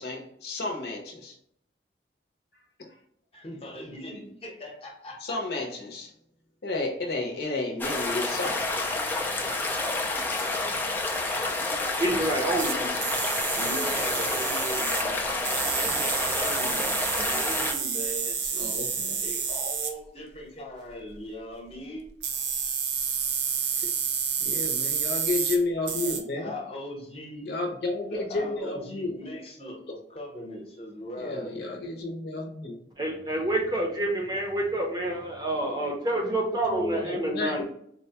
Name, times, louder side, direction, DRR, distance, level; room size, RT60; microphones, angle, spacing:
voice 1, 0.0-1.3 5.2-6.1 6.6-8.7 18.6-19.2 23.8-23.9 24.4-26.5 27.4-29.2 31.2-32.7 36.5-37.6, left 2 dB, 65° left, 1 dB, 0.7 m, -31 dB
voice 2, 3.3-5.6 13.5-18.7 19.2-22.0 26.0-27.5 28.1-31.6, equal, 35° left, -1 dB, 0.9 m, -39 dB
sound 1, 7.8-17.7, left 2 dB, 10° left, 0.3 m, -29 dB
voice 3, 12.0-13.4 33.0-37.6, right 1 dB, 20° right, 0 dB, 0.6 m, -28 dB
sound 2, 12.6-12.8 13.0-15.0 15.4-19.9 22.2-25.6 25.9-26.2, right 7 dB, 75° right, 0.5 m, -29 dB
4.1 x 2.2 x 2.8 m, 0.69 s
head